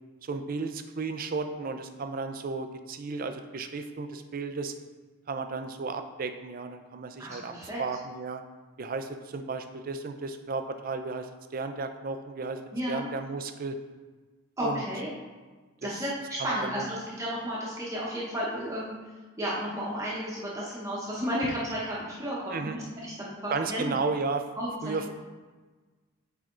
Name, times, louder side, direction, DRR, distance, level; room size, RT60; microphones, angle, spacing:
voice 1, 0.2-4.7 5.3-7.5 7.8-8.4 8.8-12.6 12.9-13.8 14.6-14.8 15.8-15.9 16.4-16.8 22.5-22.8 23.5-24.5 24.8-25.1, right 4 dB, 40° right, 7 dB, 0.4 m, -34 dB
voice 2, 7.2-7.8 12.7-13.1 14.6-15.1 15.8-18.9 19.4-24.0 24.6-25.1, equal, 15° right, -7 dB, 0.9 m, -33 dB
8.4 x 3.4 x 3.8 m, 1.3 s
head